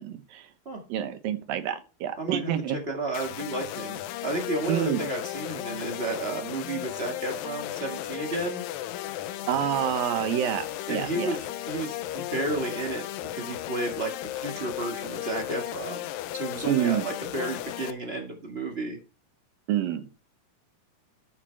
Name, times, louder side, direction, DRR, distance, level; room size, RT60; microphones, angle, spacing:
voice 1, 0.0-0.5 0.9-2.8 4.7-5.1 9.5-11.3 16.7-17.0 19.7-20.1, right 10 dB, 80° right, 10 dB, 2.9 m, -28 dB
voice 2, 2.2-2.5 2.9-8.6 10.9-13.1 13.3-19.0, right 2 dB, 40° right, 3 dB, 0.8 m, -32 dB
sound 1, 3.1-17.9, left 13 dB, 85° left, 2.4 m, -35 dB
12.5 x 6.0 x 4.5 m, 0.32 s
omnidirectional pair, 4.0 m